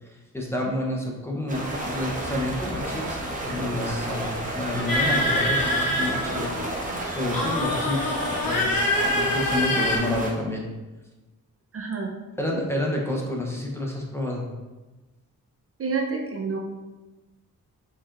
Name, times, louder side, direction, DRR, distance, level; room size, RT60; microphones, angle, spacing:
voice 1, 0.0-6.5 7.1-10.7 12.4-14.5, left 1 dB, 5° left, -1 dB, 0.7 m, -29 dB
sound 1, 1.5-10.3, right 1 dB, 25° right, 0.8 m, -31 dB
sound 2, 4.9-6.7 7.3-10.0, left 1 dB, 75° left, 1.0 m, -25 dB
voice 2, 11.7-12.1 15.8-16.6, right 4 dB, 45° right, 1 dB, 0.5 m, -28 dB
4.4 x 4.2 x 2.5 m, 1.2 s
wide cardioid pair, 105°, 34 cm